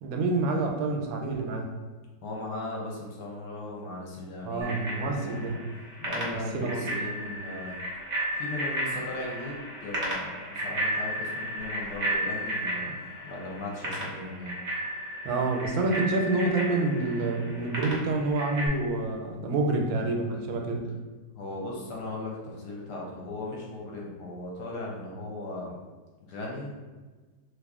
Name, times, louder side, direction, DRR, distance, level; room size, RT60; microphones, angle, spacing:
voice 1, 0.0-1.7 4.4-5.6 6.2-6.9 15.2-20.9, right 2 dB, 90° right, 3 dB, 1.3 m, -28 dB
voice 2, 2.2-5.5 6.0-7.7 8.3-14.5 21.3-25.8 26.3-26.7, left 2 dB, 70° left, -2 dB, 1.1 m, -38 dB
Bicycle bell, 4.6-18.7, right 1 dB, 55° right, 0.6 m, -34 dB
2.9 x 2.5 x 3.5 m, 1.3 s
omnidirectional pair, 2.1 m